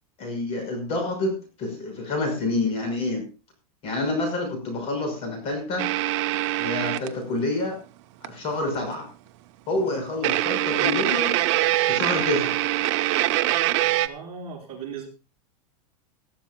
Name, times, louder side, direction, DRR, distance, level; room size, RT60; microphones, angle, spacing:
voice 1, 0.2-3.2 3.8-5.9 6.6-7.8 8.2-9.1 9.7-11.3 11.9-12.6, left 2 dB, 30° left, 4 dB, 5.9 m, -28 dB
sound 1, 5.8-7.1 8.2-8.3 8.7-8.8 10.2-14.1, right 16 dB, 45° right, 0.9 m, -23 dB
voice 2, 14.0-15.1, right 6 dB, 30° right, -3 dB, 8.0 m, -37 dB
20.5 x 13.0 x 2.3 m, 0.32 s
supercardioid pair, 150°, 20 cm